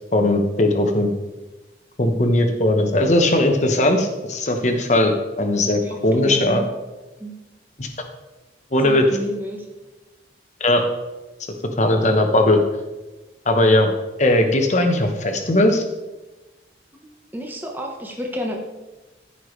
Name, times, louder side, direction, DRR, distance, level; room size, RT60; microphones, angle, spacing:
voice 1, 0.1-1.1 2.0-6.6 7.8-7.9 8.7-9.0 10.6-10.8 11.8-12.6 13.5-13.9 14.2-15.8, left 1 dB, 40° left, 5 dB, 1.1 m, -18 dB
voice 2, 5.8-6.7 7.2-7.4 8.8-9.7 17.3-18.6, equal, 10° right, 0 dB, 1.1 m, -30 dB
14.5 x 5.8 x 3.2 m, 1.1 s
head